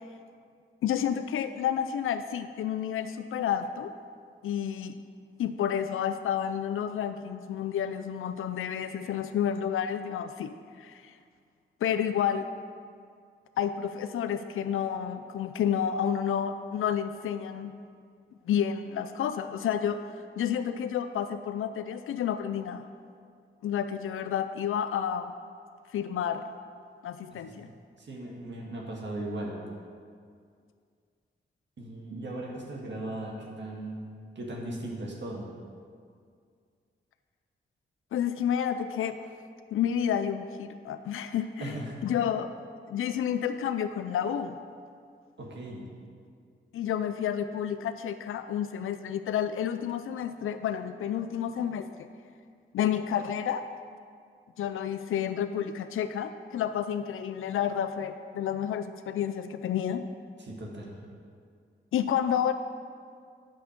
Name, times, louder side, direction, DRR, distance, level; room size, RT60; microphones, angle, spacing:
voice 1, 0.8-3.9 4.4-5.0 5.4-11.2 11.8-12.5 13.6-17.7 18.5-20.0 20.4-22.9 23.6-25.3 25.9-26.5 27.0-27.7 38.1-39.2 39.7-41.7 42.0-42.5 42.9-44.6 46.7-52.1 52.7-53.7 54.6-60.1 61.9-62.5, left 9 dB, 85° left, 10 dB, 0.4 m, -30 dB
voice 2, 27.4-27.7 28.0-29.6 31.8-34.1 34.4-35.5 41.6-42.0 45.4-45.8 60.4-60.9, right 1 dB, 60° right, -2 dB, 2.0 m, -38 dB
9.2 x 6.4 x 5.2 m, 2.2 s
cardioid pair, 50°, 21 cm